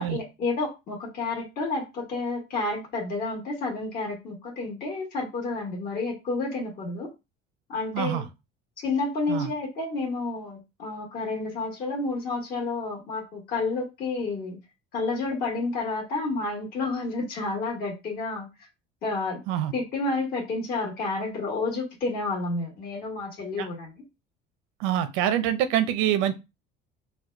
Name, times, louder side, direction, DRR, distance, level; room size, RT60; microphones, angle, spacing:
voice 1, 0.0-7.1 7.7-8.2 8.8-14.6 14.9-18.7 19.0-19.4 19.7-24.0, left 3 dB, 50° left, 1.8 m, -30 dB
voice 2, 24.8-26.3, right 11 dB, 85° right, 0.7 m, -25 dB
4.1 x 2.4 x 4.5 m
cardioid pair, 130°, 20 cm